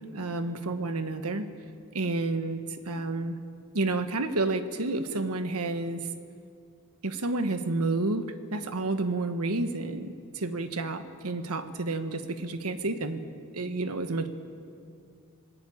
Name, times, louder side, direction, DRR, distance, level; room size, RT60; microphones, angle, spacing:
voice 1, 0.1-1.5 1.9-3.4 3.7-6.1 7.0-13.2 13.5-14.3, right 2 dB, 85° right, 8 dB, 1.5 m, -30 dB
20.5 x 19.5 x 8.8 m, 2.3 s
head